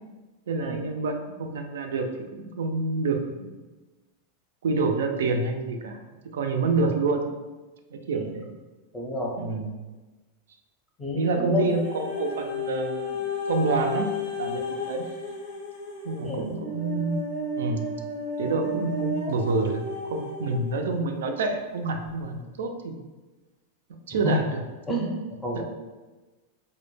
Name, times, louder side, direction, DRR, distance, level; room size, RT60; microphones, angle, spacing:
voice 1, 0.5-3.5 4.6-6.0 6.3-7.4 7.9-8.5 9.4-9.8 11.1-13.2 13.5-14.1 14.4-15.1 16.0-17.2 17.6-17.9 18.4-23.0 24.1-24.6 24.9-25.1 25.5-25.6, right 3 dB, 90° right, 5 dB, 0.3 m, -27 dB
voice 2, 8.9-9.3 11.0-11.7 16.2-16.5 24.2-24.3 24.9-25.1 25.4-25.6, left 1 dB, 5° left, -3 dB, 0.5 m, -29 dB
sound 1, 11.7-20.8 21.5-21.6, left 2 dB, 75° left, 0.7 m, -33 dB
2.1 x 2.0 x 3.1 m, 1.2 s
supercardioid pair, 140°, 0 cm